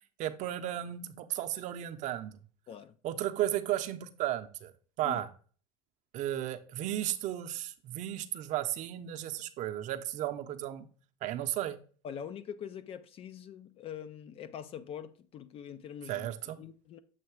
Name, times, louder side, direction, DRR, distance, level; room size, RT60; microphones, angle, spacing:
voice 1, 0.2-2.4 3.0-4.7 5.0-5.3 6.1-10.9 11.2-11.8 16.1-16.6, right 12 dB, 50° right, 0.7 m, -34 dB
voice 2, 12.0-16.3 16.6-17.0, left 8 dB, 35° left, 0.4 m, -43 dB
7.4 x 2.9 x 4.6 m
supercardioid pair, 115°, 16 cm